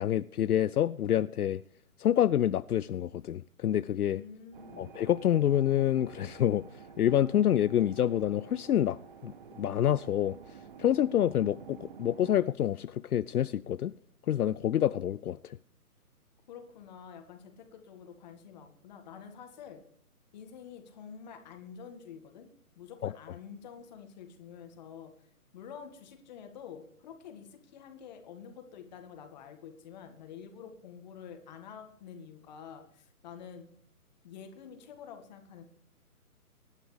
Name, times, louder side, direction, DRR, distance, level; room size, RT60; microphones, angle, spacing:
voice 1, 0.0-1.6 2.0-4.2 4.8-6.6 7.0-9.0 9.2-9.3 9.6-10.4 10.8-13.9 14.3-15.6 23.0-23.1, left 11 dB, 75° left, 0.6 m, -27 dB
voice 2, 4.0-4.9 16.5-19.8 20.3-22.5 22.8-25.1 25.5-33.7 34.2-35.6, left 7 dB, 30° left, 1.9 m, -48 dB
sound 1, 4.5-12.5, right 6 dB, 35° right, 0.9 m, -50 dB
24.5 x 11.0 x 3.4 m
figure-of-eight pair, 150°, 45 cm